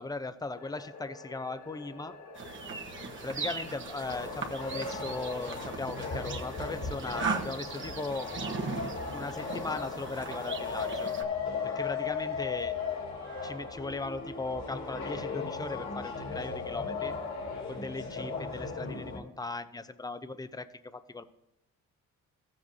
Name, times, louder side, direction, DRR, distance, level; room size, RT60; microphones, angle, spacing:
voice 1, 0.0-2.2 3.2-8.3 9.1-11.1 11.6-12.7 13.4-17.1 17.7-21.2, left 3 dB, 15° left, 11 dB, 0.7 m, -38 dB
sound 1, 0.5-10.9, left 3 dB, 90° left, 1.8 m, -48 dB
sound 2, 2.4-11.2, right 4 dB, 40° right, 1.2 m, -38 dB
sound 3, 4.0-19.2, left 5 dB, 65° left, 2.9 m, -37 dB
15.5 x 7.8 x 2.7 m, 0.88 s
cardioid pair, 90°, 30 cm